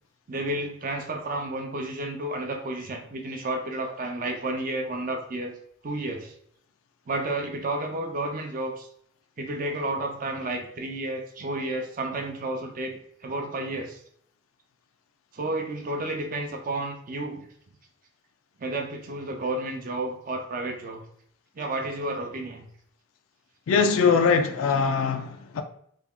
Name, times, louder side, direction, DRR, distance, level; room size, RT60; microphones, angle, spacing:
voice 1, 0.3-5.5 5.8-6.3 7.1-8.9 9.4-14.0 15.3-17.4 18.6-21.0 21.5-22.6, right 2 dB, 40° right, 0.5 m, -31 dB
voice 2, 23.7-25.6, left 5 dB, 85° left, 0.3 m, -22 dB
3.4 x 2.3 x 3.5 m
head